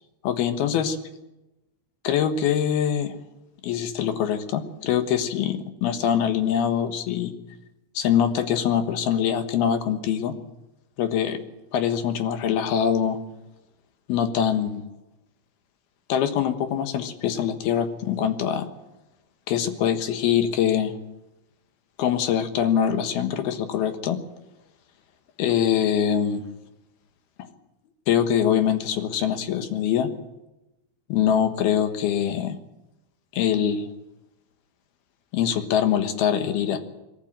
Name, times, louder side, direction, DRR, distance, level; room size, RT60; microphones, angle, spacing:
voice 1, 0.2-1.0 2.0-3.2 3.6-7.3 7.9-10.4 11.0-11.4 11.7-13.2 14.1-14.8 16.1-18.7 19.5-21.0 22.0-24.2 25.4-26.4 28.1-30.1 31.1-32.6 33.3-33.9 35.3-36.8, left 9 dB, 75° left, 7 dB, 3.3 m, -23 dB
22.5 x 14.0 x 8.8 m, 0.96 s
omnidirectional pair, 4.5 m